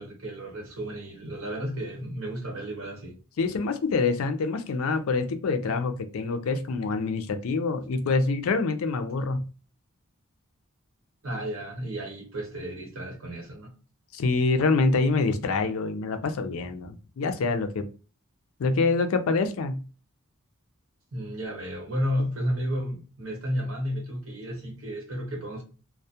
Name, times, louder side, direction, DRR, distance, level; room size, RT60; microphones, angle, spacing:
voice 1, 0.0-3.2 11.2-13.7 21.1-25.6, equal, 75° right, 1.0 m, -32 dB
voice 2, 3.4-9.4 14.1-17.9 18.6-19.8, left 3 dB, 80° left, 0.4 m, -26 dB
2.2 x 2.0 x 2.7 m
head